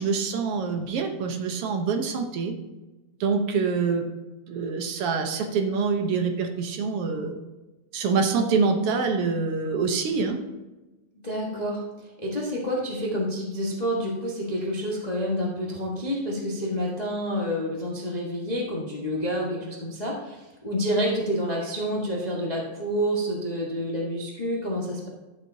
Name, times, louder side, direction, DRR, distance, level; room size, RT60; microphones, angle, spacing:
voice 1, 0.0-2.5 3.2-4.0 4.5-7.3 7.9-10.4, right 5 dB, 65° right, 4 dB, 1.5 m, -25 dB
voice 2, 11.2-11.8 12.2-25.1, equal, 40° left, -4 dB, 0.5 m, -28 dB
12.5 x 7.1 x 2.7 m, 1.1 s
omnidirectional pair, 3.4 m